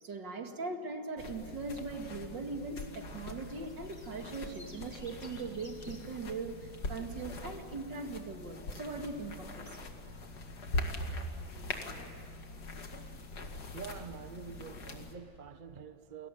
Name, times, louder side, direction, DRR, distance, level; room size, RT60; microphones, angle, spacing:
voice 1, 0.0-9.7, right 3 dB, 65° right, 2.8 m, -40 dB
sound 1, 1.2-15.2, left 2 dB, 55° left, 2.6 m, -42 dB
sound 2, 3.4-6.0 7.3-7.7, left 2 dB, 25° left, 4.0 m, -56 dB
voice 2, 13.7-16.3, right 6 dB, 35° right, 0.8 m, -46 dB
29.5 x 21.0 x 9.2 m
omnidirectional pair, 2.1 m